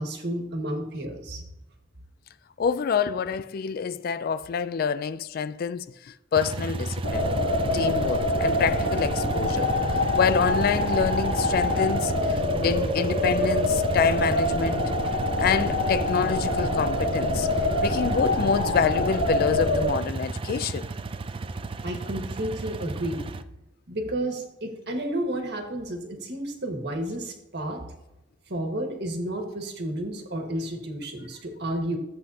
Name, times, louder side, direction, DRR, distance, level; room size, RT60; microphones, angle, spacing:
voice 1, 0.0-1.4 21.8-23.2 23.9-27.8 28.5-32.0, right 1 dB, 60° right, 1.6 m, -31 dB
voice 2, 2.6-5.9 6.3-7.3 7.7-9.7 10.1-12.1 12.6-14.8 15.4-17.5 17.8-20.9, left 6 dB, 50° left, 0.3 m, -26 dB
sound 1, 6.3-23.4, right 3 dB, 30° right, 0.3 m, -33 dB
sound 2, 7.0-19.9, left 1 dB, 80° left, 3.1 m, -25 dB
13.5 x 7.8 x 2.8 m
head